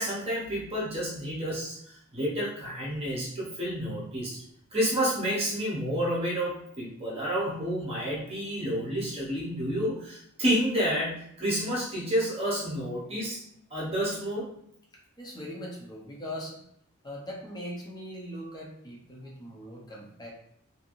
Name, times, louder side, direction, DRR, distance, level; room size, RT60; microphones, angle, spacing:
voice 1, 0.0-4.4 4.7-13.4 13.7-14.5, equal, 30° right, -6 dB, 0.8 m, -30 dB
voice 2, 15.2-16.6 17.0-20.3, equal, 20° left, -3 dB, 0.7 m, -40 dB
3.2 x 2.7 x 2.5 m, 0.71 s
head